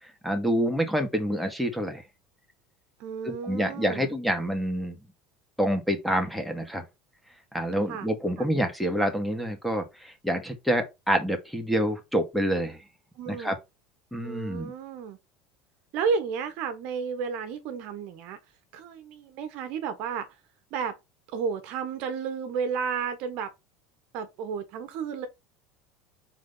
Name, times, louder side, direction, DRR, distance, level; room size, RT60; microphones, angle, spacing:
voice 1, 0.0-2.0 3.2-5.0 5.6-6.8 7.5-12.8 13.3-13.6 14.1-14.7, equal, ahead, 2.2 m, -27 dB
voice 2, 3.0-4.1 7.9-8.1 8.4-8.5 13.1-13.5 14.2-15.2 15.9-18.4 18.7-20.3 20.7-21.0 21.3-23.5 24.1-25.3, right 6 dB, 65° right, 1.5 m, -32 dB
4.7 x 4.0 x 5.7 m
hypercardioid pair, 85°, 2 cm